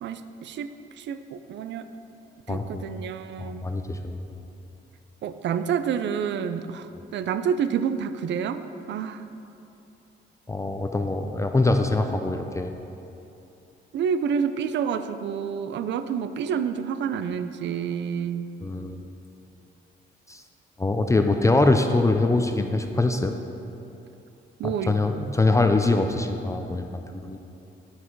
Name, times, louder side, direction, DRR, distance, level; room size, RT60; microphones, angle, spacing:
voice 1, 0.0-0.7 1.0-1.9 2.5-3.7 5.2-9.3 13.9-18.5 24.6-24.9, right 7 dB, 65° right, 11 dB, 0.5 m, -28 dB
voice 2, 2.5-2.8 3.4-4.2 10.5-12.7 18.6-19.1 20.3-20.4 20.8-23.3 24.6-27.4, left 2 dB, 15° left, 5 dB, 0.5 m, -23 dB
9.5 x 6.2 x 4.6 m, 2.8 s
cardioid pair, 90°, 20 cm